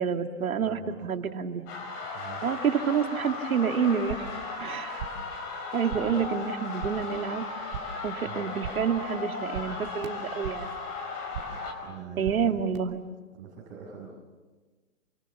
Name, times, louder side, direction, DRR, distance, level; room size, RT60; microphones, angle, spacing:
voice 1, 0.0-1.8 2.1-4.3 4.6-5.1 5.7-7.4 8.0-10.8 12.2-13.0, right 7 dB, 85° right, 5 dB, 2.4 m, -28 dB
voice 2, 0.6-1.1 2.1-2.5 5.9-6.3 8.2-8.5 11.8-12.6 13.3-14.1, right 7 dB, 20° right, -5 dB, 6.8 m, -43 dB
sound 1, 1.7-11.7, left 4 dB, 25° left, 5.0 m, -36 dB
sound 2, 3.9-4.4 4.7-5.3 5.6-6.3 6.5-7.1 7.4-8.1 8.4-9.0 9.2-10.8 11.1-11.7 12.0-12.8, right 8 dB, 40° right, 2.9 m, -41 dB
29.0 x 26.0 x 7.3 m, 1.3 s
hypercardioid pair, 165°, 41 cm